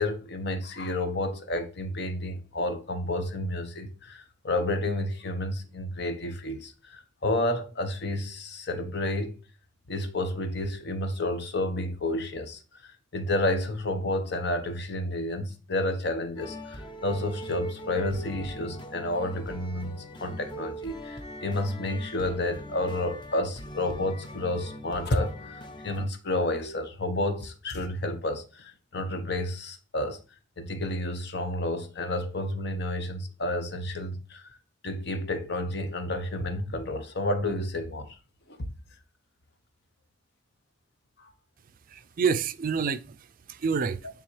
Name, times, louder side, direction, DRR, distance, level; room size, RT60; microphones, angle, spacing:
voice 1, 0.0-9.4 9.9-30.2 30.6-34.6 34.8-38.2 38.5-38.6 41.2-41.3, left 1 dB, 60° left, 0.9 m, -30 dB
sound 1, 16.4-26.1, equal, 25° left, 0.7 m, -41 dB
voice 2, 41.9-44.1, right 6 dB, 45° right, 0.4 m, -28 dB
9.1 x 3.6 x 3.2 m
head